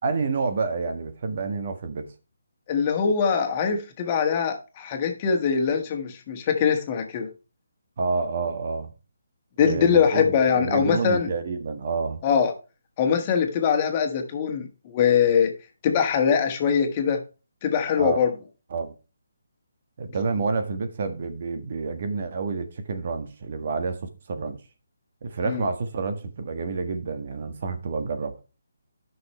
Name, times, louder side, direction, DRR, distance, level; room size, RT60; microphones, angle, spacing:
voice 1, 0.0-2.1 8.0-8.9 9.6-12.2 18.0-18.2 18.7-18.9 20.0-24.6 25.2-28.3, right 4 dB, 50° right, 1.6 m, -29 dB
voice 2, 2.7-7.3 9.6-11.3 12.2-12.5 13.0-15.5 15.8-17.2 17.6-18.3 25.4-25.7, left 7 dB, 30° left, 1.7 m, -22 dB
12.5 x 6.2 x 3.3 m
hypercardioid pair, 155°, 0 cm